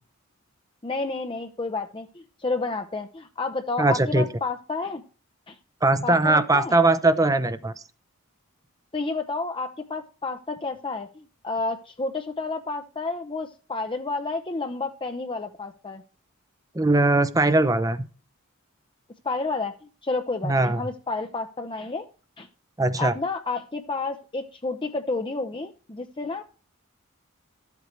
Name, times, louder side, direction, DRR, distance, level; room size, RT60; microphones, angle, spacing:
voice 1, 0.8-5.0 5.5-5.6 6.0-6.7 8.9-16.0 19.2-19.8 20.0-22.1 22.4-22.5 23.0-26.4, left 3 dB, 20° left, 5 dB, 0.6 m, -30 dB
voice 2, 3.8-4.3 5.8-7.7 16.7-18.1 20.4-20.8 22.8-23.1, right 2 dB, 15° right, 13 dB, 0.6 m, -20 dB
12.5 x 8.2 x 4.5 m, 0.36 s
head